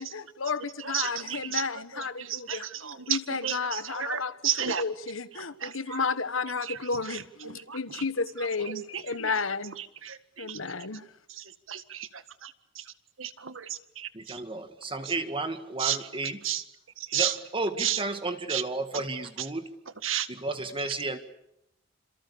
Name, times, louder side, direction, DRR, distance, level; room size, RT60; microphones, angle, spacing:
voice 1, 0.0-9.8 10.4-11.1, left 4 dB, 85° left, 1.4 m, -32 dB
voice 2, 0.8-1.7 2.2-4.8 5.6-6.0 6.6-6.8 7.1-8.0 8.7-9.3 10.0-10.6 11.4-12.8 13.2-13.7 14.0-14.4 15.8-16.0 16.4-16.6 17.0-17.3 17.8-18.0 18.5-18.6 18.9-19.0 20.0-20.3, right 10 dB, 80° right, 1.8 m, -33 dB
voice 3, 14.1-16.6 17.1-19.7 20.3-21.2, right 2 dB, 25° right, 1.8 m, -33 dB
28.5 x 27.5 x 7.1 m
head